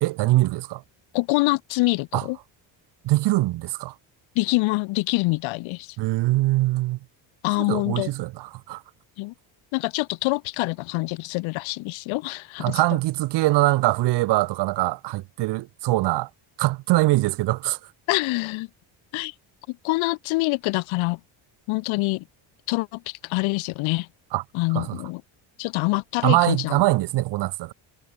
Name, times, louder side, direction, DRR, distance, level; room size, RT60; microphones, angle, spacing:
voice 1, 0.0-0.8 2.1-2.2 3.0-3.9 6.0-7.0 7.7-8.8 12.6-16.3 16.6-17.8 24.3-24.4 24.7-25.0 26.2-27.7, right 18 dB, 60° right, 0.7 m, -22 dB
voice 2, 1.1-2.4 4.4-6.0 7.4-8.1 9.2-9.3 9.7-12.8 18.1-18.7 19.1-19.3 19.7-21.2 21.7-22.2 22.7-24.1 24.5-25.2 25.6-26.8, left 24 dB, 90° left, 0.7 m, -25 dB
cardioid pair, 145°, 46 cm